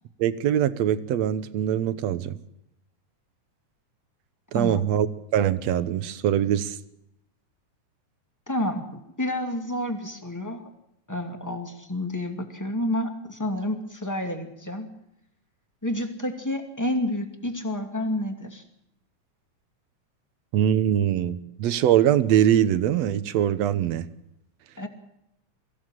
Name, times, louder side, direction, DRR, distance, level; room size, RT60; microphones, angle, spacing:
voice 1, 0.2-2.4 4.5-5.1 5.3-6.8 20.5-24.1, right 10 dB, 70° right, 13 dB, 2.0 m, -22 dB
voice 2, 4.5-4.9 8.5-10.6 11.1-14.9 15.8-18.6 24.8-24.9, left 1 dB, 5° left, 4 dB, 2.0 m, -29 dB
24.0 x 15.5 x 7.6 m, 0.84 s
omnidirectional pair, 3.4 m